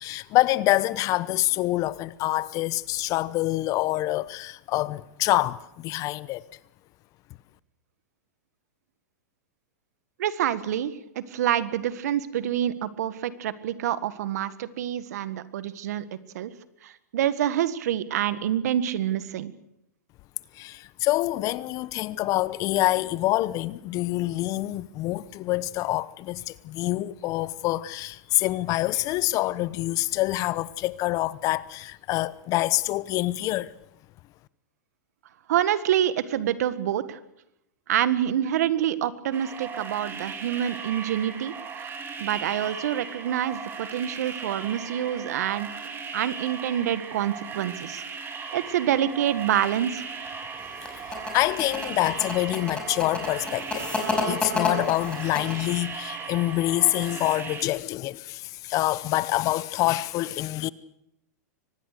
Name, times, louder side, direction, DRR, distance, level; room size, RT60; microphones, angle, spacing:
voice 1, 0.0-6.4 20.6-33.7 50.9-51.0 51.3-53.9 54.2-60.7, left 17 dB, 40° left, 0.8 m, -26 dB
voice 2, 10.2-16.5 16.8-19.5 35.5-37.2 37.9-41.5 41.8-41.9 42.2-45.7 46.1-48.0 48.5-50.1, right 11 dB, 65° right, 1.6 m, -27 dB
sound 1, 39.3-57.6, right 5 dB, 25° right, 3.7 m, -37 dB
sound 2, 50.6-55.8, left 3 dB, 10° left, 5.6 m, -30 dB
24.0 x 19.5 x 6.6 m
hypercardioid pair, 120°, 9 cm